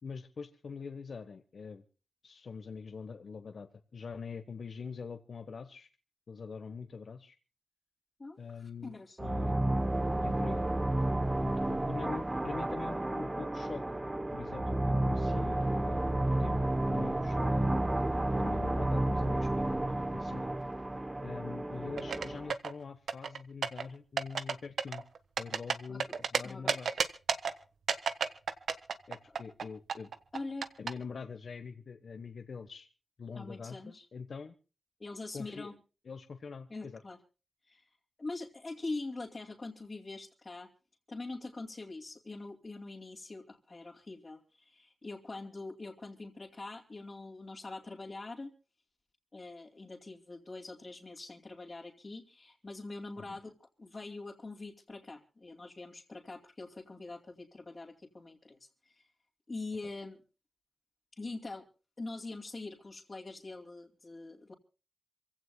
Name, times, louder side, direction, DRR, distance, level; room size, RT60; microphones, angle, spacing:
voice 1, 0.0-1.8 2.2-5.9 6.3-7.3 8.4-9.6 10.1-10.7 11.4-13.8 14.3-18.0 18.4-20.4 21.2-25.0 25.4-26.9 29.1-30.1 30.8-32.9 33.2-34.5 35.3-35.7 36.0-37.0 53.2-53.4, left 5 dB, 65° left, 8 dB, 1.2 m, -44 dB
voice 2, 8.2-9.3 25.9-26.2 26.4-26.8 29.3-29.4 30.3-30.7 33.3-34.0 35.0-35.7 36.7-37.2 37.6-40.7 41.1-48.5 49.3-59.1 59.5-60.2 61.1-61.6 62.0-64.5, left 3 dB, 35° left, -3 dB, 2.7 m, -44 dB
sound 1, 9.2-22.5, right 1 dB, 20° right, 0.8 m, -31 dB
sound 2, 22.0-22.7 23.1-23.8 24.2-24.5 24.8-26.4 26.7-27.5 27.9-29.6 29.9-30.9, right 6 dB, 90° right, 1.2 m, -31 dB
27.5 x 16.0 x 2.3 m, 0.35 s
wide cardioid pair, 110°, 0 cm